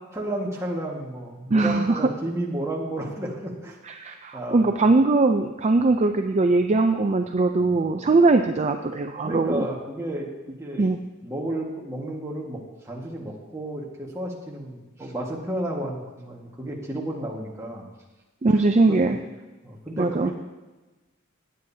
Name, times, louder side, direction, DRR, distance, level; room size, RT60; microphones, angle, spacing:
voice 1, 0.1-3.8 4.1-4.9 5.8-5.9 7.6-7.8 8.0-8.2 9.2-10.9 11.2-17.9 18.9-19.1 19.6-20.3, right 1 dB, 15° right, -2 dB, 1.7 m, -32 dB
voice 2, 1.5-2.0 3.9-9.7 10.8-11.0 18.4-19.2 20.0-20.3, right 3 dB, 35° right, 6 dB, 0.4 m, -21 dB
17.5 x 9.1 x 2.8 m, 1.2 s
head